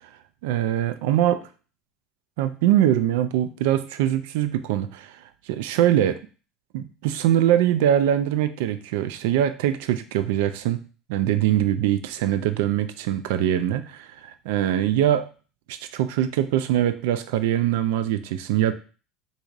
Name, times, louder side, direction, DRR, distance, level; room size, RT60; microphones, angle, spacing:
voice 1, 0.4-1.5 2.4-6.2 6.7-10.8 11.1-15.3 15.7-18.7, right 11 dB, 90° right, 11 dB, 0.3 m, -23 dB
4.5 x 2.7 x 2.4 m, 0.37 s
cardioid pair, 165°, 0 cm